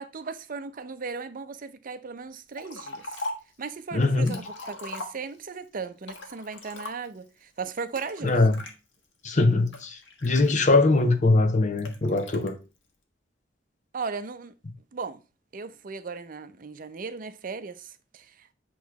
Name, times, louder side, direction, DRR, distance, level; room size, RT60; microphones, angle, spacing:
voice 1, 0.0-3.1 3.6-8.4 13.9-14.5 14.9-15.2 15.5-18.5, right 4 dB, 50° right, 0.6 m, -37 dB
Liquid, 2.5-3.6 4.0-5.6 6.0-7.3 8.0-8.7 9.3-11.0 11.8-12.5, left 2 dB, 90° left, 1.4 m, -39 dB
voice 2, 3.9-4.4 8.2-8.6 9.2-12.6, left 2 dB, 40° left, 0.9 m, -22 dB
8.4 x 3.1 x 4.7 m
head